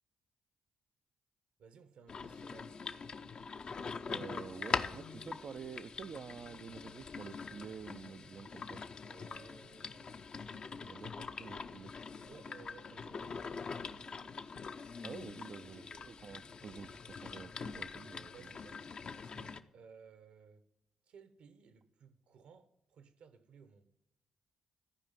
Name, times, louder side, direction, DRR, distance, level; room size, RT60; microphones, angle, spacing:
voice 1, 1.6-2.9 9.1-11.2 12.2-14.4 15.6-16.2 18.3-20.7 21.1-23.9, right 6 dB, 70° right, 1.1 m, -59 dB
sound 1, 2.1-19.6, left 5 dB, 50° left, 0.7 m, -43 dB
voice 2, 4.0-8.8 10.5-11.9 15.0-18.5, right 6 dB, 55° right, 0.4 m, -49 dB
14.5 x 5.0 x 9.1 m
hypercardioid pair, 45°, 2 cm